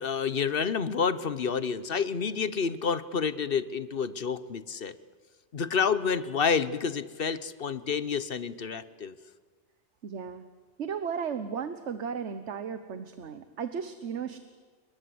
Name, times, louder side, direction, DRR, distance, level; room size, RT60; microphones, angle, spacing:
voice 1, 0.0-5.0 5.5-9.1, left 6 dB, 55° left, 15 dB, 1.1 m, -29 dB
voice 2, 10.0-10.4 10.8-14.4, right 7 dB, 75° right, 10 dB, 1.4 m, -35 dB
29.5 x 21.5 x 7.8 m, 1.5 s
omnidirectional pair, 1.2 m